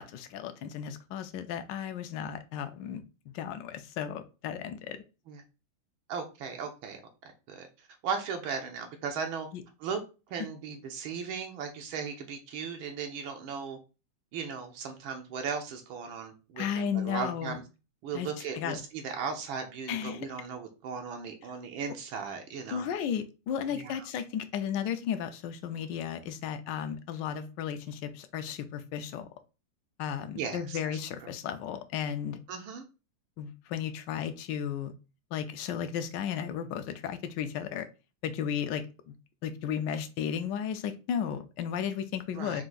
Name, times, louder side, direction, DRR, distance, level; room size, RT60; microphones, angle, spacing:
voice 1, 0.0-3.0 3.3-5.0 9.5-9.6 16.6-17.6 18.1-18.3 18.5-18.8 19.9-20.3 22.7-29.3 30.0-32.4 33.4-34.9 35.3-37.9 38.2-39.1 39.4-42.6, left 8 dB, 70° left, 9 dB, 1.1 m, -34 dB
voice 2, 6.1-7.7 8.0-9.5 9.8-10.0 10.3-13.8 14.3-17.6 18.0-22.9 23.7-24.1 30.4-31.3 32.5-32.8 42.3-42.6, right 6 dB, 80° right, 4 dB, 1.5 m, -37 dB
4.6 x 2.4 x 3.8 m, 0.31 s
omnidirectional pair, 2.2 m